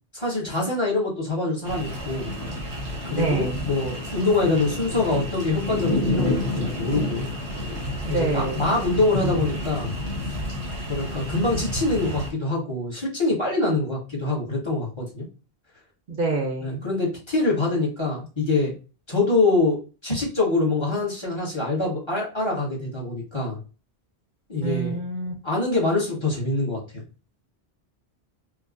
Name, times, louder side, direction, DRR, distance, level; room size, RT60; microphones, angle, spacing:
voice 1, 0.1-2.3 3.0-7.3 8.1-9.9 10.2-10.3 10.9-15.2 16.6-18.7 19.1-23.6 24.5-25.0 25.4-27.0, left 2 dB, 25° left, -2 dB, 1.2 m, -25 dB
sound 1, 1.6-12.3, left 1 dB, 90° right, 1.3 m, -29 dB
voice 2, 3.2-3.6 8.1-8.7 16.1-16.8 24.6-25.3, right 3 dB, 55° right, 2 dB, 0.8 m, -26 dB
4.6 x 2.2 x 2.4 m, 0.34 s
omnidirectional pair, 1.1 m